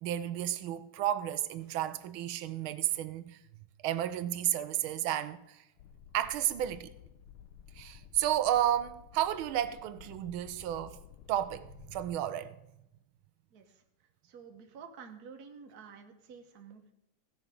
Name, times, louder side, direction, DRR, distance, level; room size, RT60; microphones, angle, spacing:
voice 1, 0.0-3.4 3.8-5.6 6.1-6.9 7.8-11.0 11.3-12.6, right 12 dB, 80° right, 1.5 m, -32 dB
sound 1, 5.8-12.1, left 9 dB, 85° left, 1.7 m, -54 dB
voice 2, 14.2-16.9, right 6 dB, 50° right, 1.5 m, -50 dB
16.0 x 5.9 x 5.2 m
omnidirectional pair, 2.3 m